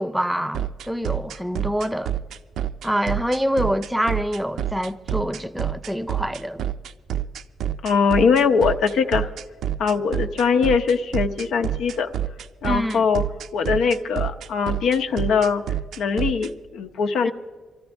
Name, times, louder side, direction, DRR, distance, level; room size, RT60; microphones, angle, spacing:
voice 1, 0.0-2.1 2.8-6.6 12.7-13.0 17.2-17.3, equal, 5° right, 0.5 m, -26 dB
sound 1, 0.5-16.5, right 10 dB, 75° right, 0.4 m, -27 dB
voice 2, 7.8-9.3 9.8-12.1 12.6-13.2 13.5-15.6 16.0-17.3, left 5 dB, 75° left, 0.8 m, -21 dB
24.5 x 14.5 x 3.5 m
cardioid pair, 155°, 0 cm